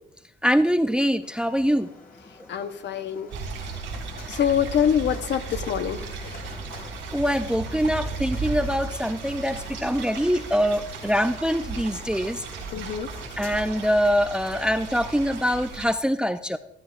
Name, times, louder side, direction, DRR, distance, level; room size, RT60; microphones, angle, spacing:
voice 1, 0.4-1.9 7.1-12.4 13.4-16.6, equal, 5° right, 11 dB, 0.4 m, -24 dB
sound 1, 1.2-15.7, left 3 dB, 45° left, 2.2 m, -46 dB
voice 2, 2.5-3.3 4.3-6.5 12.7-13.1, left 8 dB, 65° left, 9 dB, 0.9 m, -25 dB
sound 2, 3.3-15.8, right 4 dB, 90° right, 3.5 m, -35 dB
14.5 x 13.0 x 2.5 m, 0.78 s
cardioid pair, 90°, 20 cm